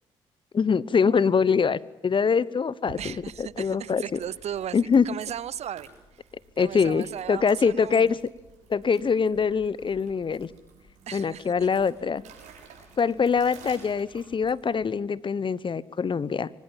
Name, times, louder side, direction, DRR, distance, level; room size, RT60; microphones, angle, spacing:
voice 1, 0.5-4.2 4.7-5.0 6.6-8.2 8.7-10.5 11.1-12.2 13.0-16.5, left 6 dB, 45° left, 20 dB, 1.1 m, -24 dB
sound 1, 2.8-14.9, right 5 dB, 80° right, 7.0 m, -52 dB
voice 2, 3.0-4.8 5.0-5.9 6.6-8.2 11.1-11.7, right 10 dB, 60° right, 22 dB, 0.8 m, -36 dB
24.5 x 20.0 x 7.4 m, 1.1 s
supercardioid pair, 50°, 12 cm